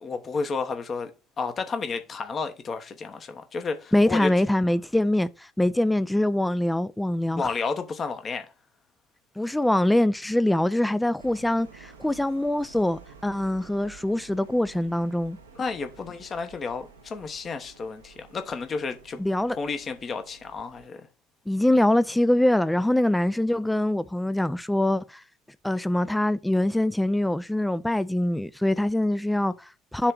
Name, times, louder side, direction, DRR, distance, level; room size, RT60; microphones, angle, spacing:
voice 1, 0.0-1.1 1.4-4.3 7.3-8.5 15.5-19.2 19.5-21.1, left 4 dB, 35° left, 1.0 m, -31 dB
voice 2, 3.9-7.5 9.4-15.4 19.2-19.6 21.5-25.2 25.6-30.1, left 1 dB, 5° left, 0.4 m, -24 dB
sound 1, 11.2-20.9, right 5 dB, 80° right, 1.0 m, -51 dB
7.3 x 3.3 x 5.9 m
figure-of-eight pair, 60°, 0 cm